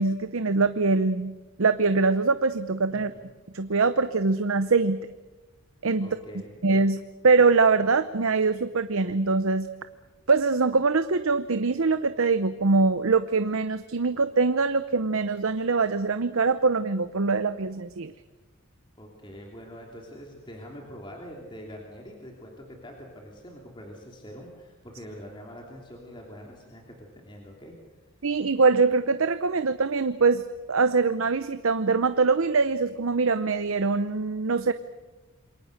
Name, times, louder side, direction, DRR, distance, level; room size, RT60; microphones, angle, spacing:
voice 1, 0.0-1.3 1.6-3.1 3.5-5.0 5.8-6.1 6.6-9.7 10.3-18.1 28.2-30.4 30.7-34.7, right 4 dB, 70° right, 11 dB, 0.8 m, -23 dB
voice 2, 2.9-3.3 6.0-6.7 19.0-27.7, equal, 20° left, 0 dB, 3.0 m, -44 dB
27.5 x 23.0 x 6.6 m, 1.2 s
head